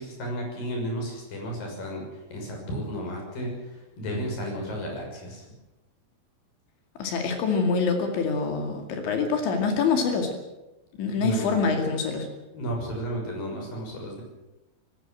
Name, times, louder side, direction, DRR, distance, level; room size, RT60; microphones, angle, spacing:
voice 1, 0.0-5.4 11.2-11.6 12.5-14.2, equal, 50° left, 1 dB, 7.9 m, -33 dB
voice 2, 7.0-10.3 11.0-12.3, left 5 dB, 80° left, 4 dB, 4.7 m, -25 dB
19.5 x 18.0 x 7.7 m, 1.0 s
omnidirectional pair, 5.2 m